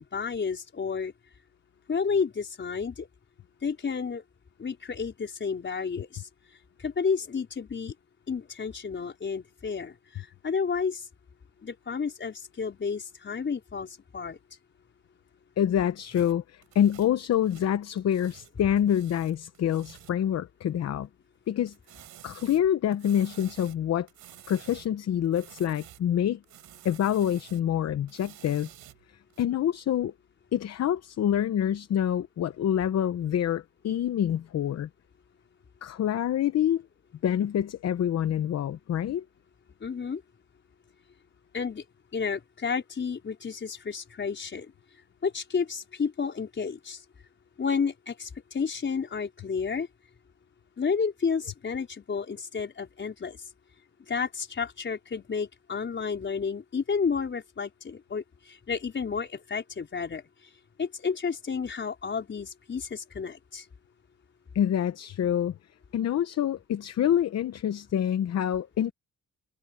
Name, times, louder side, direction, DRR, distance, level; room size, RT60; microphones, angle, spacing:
voice 1, 0.1-1.1 1.9-3.1 3.6-4.2 4.6-6.3 6.8-7.9 8.3-11.1 11.6-14.4 39.8-40.2 41.5-41.8 42.1-44.7 45.2-47.0 47.6-49.9 50.8-53.4 54.1-60.2 60.8-63.6, left 5 dB, 40° left, 4.9 m, -31 dB
voice 2, 15.6-21.1 21.5-21.7 22.2-24.1 24.5-26.4 26.8-28.7 29.4-30.1 30.5-34.9 35.8-36.8 37.2-39.2 64.5-65.6 65.9-68.9, left 10 dB, 55° left, 1.0 m, -26 dB
sound 1, 16.0-18.5 18.8-20.2 21.7-23.8 24.1-25.0 25.2-26.1 26.4-27.7 28.1-29.4, right 13 dB, 85° right, 4.9 m, -51 dB
cardioid pair, 90°, 30 cm